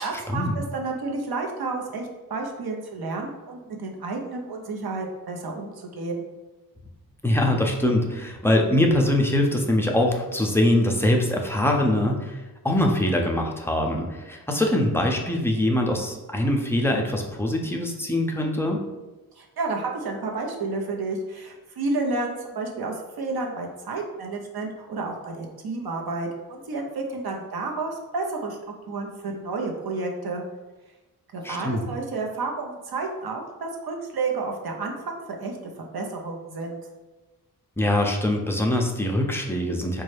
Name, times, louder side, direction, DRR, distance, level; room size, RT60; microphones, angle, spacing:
voice 1, 0.0-6.3 19.4-28.6 28.8-30.4 31.3-36.8, right 3 dB, 70° right, 1 dB, 0.7 m, -31 dB
voice 2, 7.2-18.8 31.4-31.8 37.8-40.0, left 1 dB, 5° left, 1 dB, 0.4 m, -23 dB
4.1 x 2.3 x 3.2 m, 1.1 s
wide cardioid pair, 90°, 38 cm